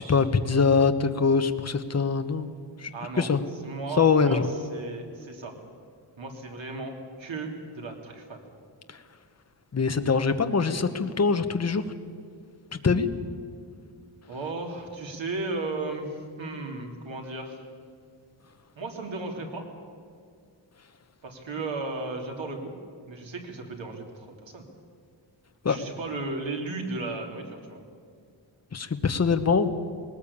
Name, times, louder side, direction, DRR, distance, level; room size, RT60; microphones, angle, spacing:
voice 1, 0.0-2.5 2.8-2.9 3.2-3.4 4.0-4.5 9.7-11.8 12.8-13.1 25.6-25.8 28.7-29.7, left 5 dB, 35° left, 8 dB, 1.1 m, -23 dB
voice 2, 2.9-3.3 3.6-5.5 6.2-8.4 14.3-17.6 18.8-19.6 21.2-22.7 23.1-24.6 25.7-27.8, right 3 dB, 80° right, 2 dB, 3.1 m, -35 dB
20.0 x 19.0 x 8.6 m, 2.2 s
wide cardioid pair, 165°, 45 cm